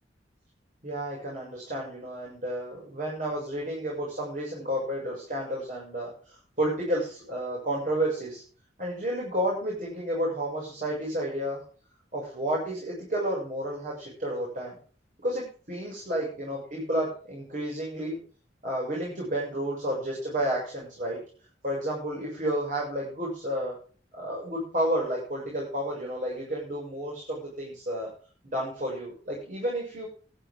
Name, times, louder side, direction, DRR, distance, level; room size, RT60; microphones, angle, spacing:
voice 1, 0.8-8.4 8.8-11.6 12.1-14.8 15.2-18.2 18.6-21.2 21.6-23.7 24.1-28.1 28.4-30.1, right 1 dB, 45° right, -3 dB, 7.0 m, -31 dB
19.0 x 11.5 x 3.8 m, 0.42 s
head